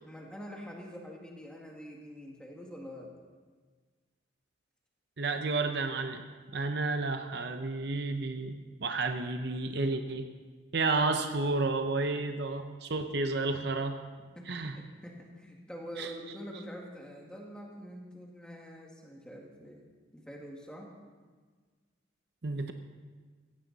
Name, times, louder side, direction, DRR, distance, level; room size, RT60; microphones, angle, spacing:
voice 1, 0.0-3.1 14.3-19.8 20.1-20.9, equal, 5° left, -1 dB, 2.0 m, -45 dB
voice 2, 5.2-6.2 6.5-8.6 8.8-10.3 10.7-14.0 14.5-14.8 16.0-16.1 22.4-22.7, right 3 dB, 55° right, 7 dB, 0.7 m, -31 dB
15.5 x 15.5 x 4.1 m, 1.5 s
head